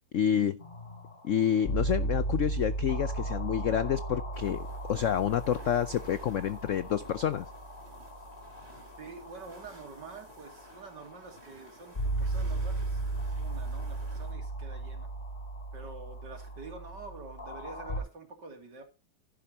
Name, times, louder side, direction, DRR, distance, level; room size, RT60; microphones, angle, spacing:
voice 1, 0.1-0.6 1.2-7.5, left 9 dB, 70° left, 15 dB, 0.7 m, -28 dB
sound 1, 0.6-18.0, right 2 dB, 25° left, 2.5 m, -36 dB
sound 2, 4.3-14.3, right 1 dB, 30° right, 3.8 m, -55 dB
voice 2, 9.0-13.0 13.4-15.1 15.7-18.8, right 4 dB, 65° right, 5 dB, 3.2 m, -47 dB
11.5 x 10.5 x 2.9 m, 0.28 s
omnidirectional pair, 2.0 m